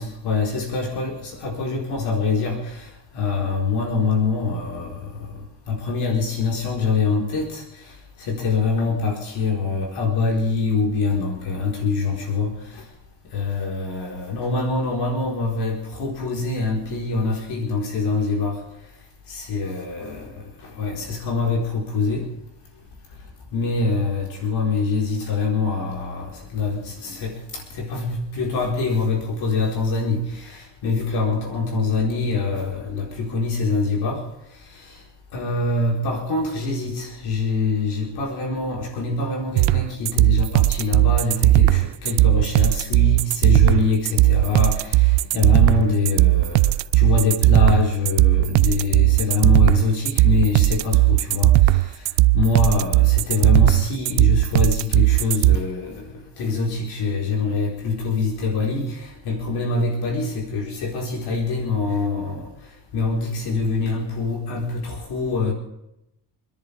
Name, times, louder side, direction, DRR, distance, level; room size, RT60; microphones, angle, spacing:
voice 1, 0.0-12.9 13.3-18.6 19.3-22.3 23.5-35.0 35.3-65.5, left 4 dB, 65° left, 4.5 m, -25 dB
sound 1, 39.6-55.6, right 18 dB, 75° right, 0.6 m, -17 dB
28.5 x 10.5 x 3.5 m
cardioid pair, 140°, 42 cm